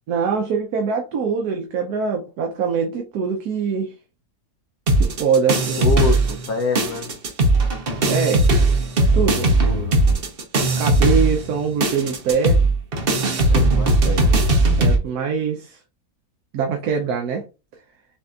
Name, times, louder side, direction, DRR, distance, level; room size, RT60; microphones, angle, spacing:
voice 1, 0.1-3.9 4.9-5.8 8.1-8.5 9.1-9.5 10.8-12.6 14.8-15.8 16.5-17.4, right 6 dB, 75° right, 1.2 m, -23 dB
sound 1, 4.9-6.5 6.8-15.0, right 2 dB, 45° right, 0.9 m, -18 dB
voice 2, 5.8-7.1 9.6-10.0 13.5-14.3, left 3 dB, 70° left, 1.2 m, -26 dB
6.7 x 2.7 x 2.4 m
omnidirectional pair, 1.7 m